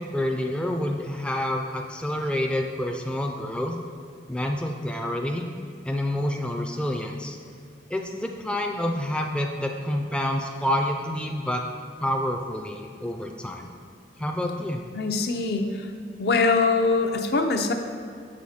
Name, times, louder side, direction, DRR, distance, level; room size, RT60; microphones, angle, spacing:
voice 1, 0.0-3.8 4.3-5.5 5.8-7.4 7.9-11.6 12.0-13.7 14.2-14.8, left 1 dB, 5° left, 3 dB, 0.3 m, -28 dB
voice 2, 14.9-15.9 16.2-17.7, left 3 dB, 65° left, 5 dB, 0.6 m, -23 dB
6.5 x 6.3 x 4.2 m, 2.3 s
head